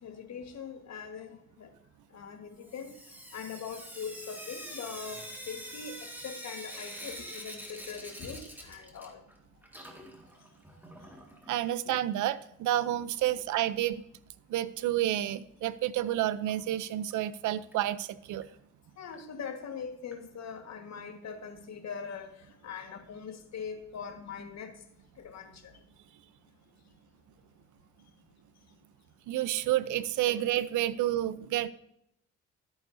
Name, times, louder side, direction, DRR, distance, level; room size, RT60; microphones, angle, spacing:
voice 1, 0.0-1.7 2.1-2.9 3.3-9.2 19.0-22.3 22.6-24.8 25.2-25.7, left 6 dB, 60° left, 6 dB, 1.6 m, -42 dB
Sink (filling or washing) / Drip, 2.6-9.4 9.6-11.6 12.7-12.8 13.1-13.2 13.5-13.6 16.5-16.6 17.1-17.2 17.7-17.8 18.4-18.5 19.1-19.2 20.1-20.2, equal, 5° right, 2.0 m, -45 dB
voice 2, 11.5-14.0 14.5-18.4 29.3-31.7, right 13 dB, 80° right, 16 dB, 0.6 m, -30 dB
13.5 x 8.7 x 2.7 m, 0.76 s
cardioid pair, 90°, 30 cm